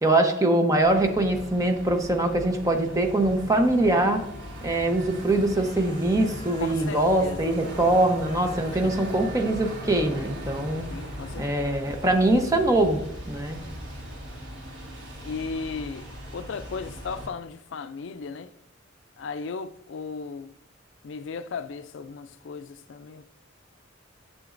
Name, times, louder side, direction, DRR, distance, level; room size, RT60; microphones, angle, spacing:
voice 1, 0.0-4.2 4.6-10.8 11.4-13.0 13.3-13.6, right 1 dB, 15° right, 0.8 m, -23 dB
sound 1, 0.8-17.3, equal, 60° right, 2.9 m, -39 dB
voice 2, 6.6-7.6 8.7-9.1 10.9-11.4 15.2-16.1 16.3-18.5 19.2-20.5 21.0-23.3, left 5 dB, 65° left, 0.4 m, -36 dB
10.0 x 6.8 x 2.5 m
head